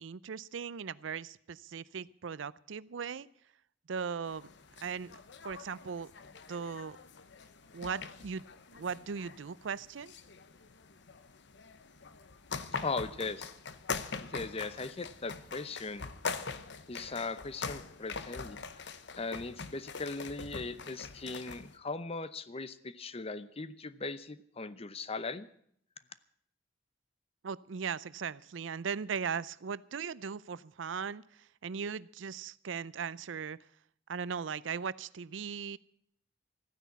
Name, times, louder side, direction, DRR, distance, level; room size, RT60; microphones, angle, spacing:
voice 1, 0.0-3.3 3.9-4.5 4.8-5.1 5.4-6.1 6.5-7.0 7.7-8.4 8.7-10.2 27.4-31.2 31.6-33.6 34.1-35.8, right 6 dB, 90° right, 19 dB, 0.5 m, -38 dB
sound 1, 4.3-21.8, left 5 dB, 65° left, 0.9 m, -43 dB
voice 2, 12.8-13.5 14.2-16.1 16.9-18.8 19.2-25.5, left 3 dB, 35° left, 14 dB, 0.7 m, -39 dB
14.5 x 9.9 x 8.3 m, 0.68 s
head